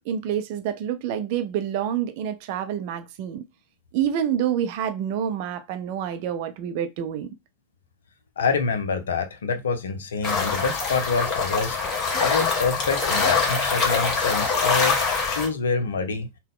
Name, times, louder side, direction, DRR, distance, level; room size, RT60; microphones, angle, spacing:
voice 1, 0.1-3.4 3.9-7.3, right 9 dB, 45° right, 0.5 m, -27 dB
voice 2, 8.4-11.8 12.2-15.0 15.3-16.3, left 5 dB, 65° left, 0.5 m, -26 dB
sound 1, 10.2-15.5, left 4 dB, 30° left, 1.1 m, -24 dB
3.6 x 2.2 x 3.6 m
figure-of-eight pair, 90°, 0 cm